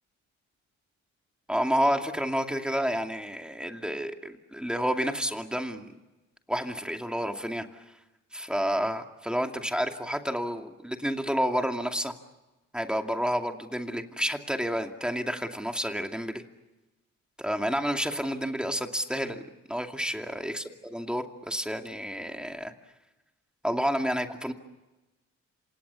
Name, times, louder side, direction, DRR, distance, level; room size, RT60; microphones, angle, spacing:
voice 1, 1.5-5.9 6.5-7.9 8.3-12.1 12.7-16.4 17.4-19.4 19.7-20.6 20.9-22.7 23.6-24.5, equal, 5° right, 4 dB, 2.5 m, -30 dB
28.0 x 27.0 x 7.0 m, 1.1 s
cardioid pair, 90°, 30 cm